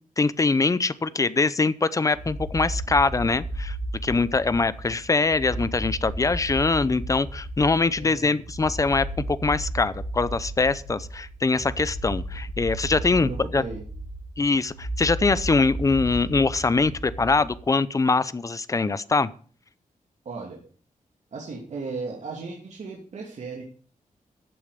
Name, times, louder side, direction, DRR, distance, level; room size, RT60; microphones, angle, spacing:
voice 1, 0.2-3.8 4.0-13.6 14.4-19.3, left 3 dB, 25° left, 16 dB, 0.6 m, -23 dB
sound 1, 2.1-17.7, right 1 dB, 45° right, 4.7 m, -34 dB
voice 2, 8.0-8.4 12.9-13.8 20.2-20.6 21.3-23.6, right 4 dB, 60° right, -1 dB, 2.8 m, -36 dB
14.0 x 8.7 x 5.1 m, 0.42 s
wide cardioid pair, 170°, 14 cm